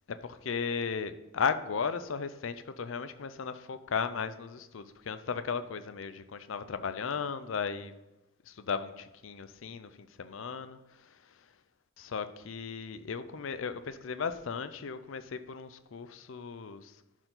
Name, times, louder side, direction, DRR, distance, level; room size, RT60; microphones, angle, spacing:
voice 1, 0.3-7.9 8.5-10.8 12.0-16.9, left 6 dB, 70° left, 12 dB, 0.5 m, -36 dB
12.0 x 4.5 x 3.9 m, 1.0 s
head